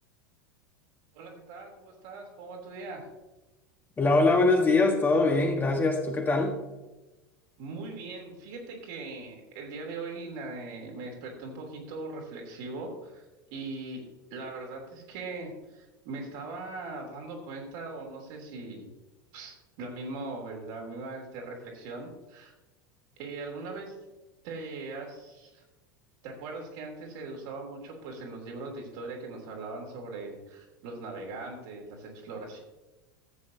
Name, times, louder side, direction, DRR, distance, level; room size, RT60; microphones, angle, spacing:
voice 1, 1.1-3.0 7.6-13.2 13.5-14.0 14.3-18.9 19.3-22.5 23.2-23.9 24.4-25.6 26.2-32.6, right 3 dB, 50° right, 0 dB, 3.1 m, -40 dB
voice 2, 4.0-6.6, left 3 dB, 15° left, 2 dB, 1.5 m, -23 dB
14.5 x 8.6 x 2.8 m, 1.1 s
figure-of-eight pair, 80°, 11 cm